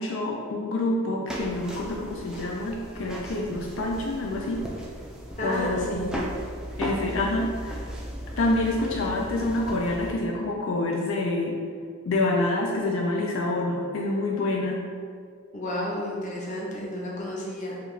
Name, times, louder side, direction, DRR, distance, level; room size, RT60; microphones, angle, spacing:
voice 1, 0.0-4.7 5.4-6.3 6.8-7.9 8.4-11.6 12.0-14.8, left 2 dB, 75° left, -1 dB, 0.4 m, -27 dB
sound 1, 1.3-10.1, equal, 5° right, 0.3 m, -37 dB
voice 2, 5.4-6.2 15.5-17.8, left 1 dB, 35° left, -4 dB, 0.7 m, -31 dB
4.8 x 2.4 x 3.2 m, 2.1 s
head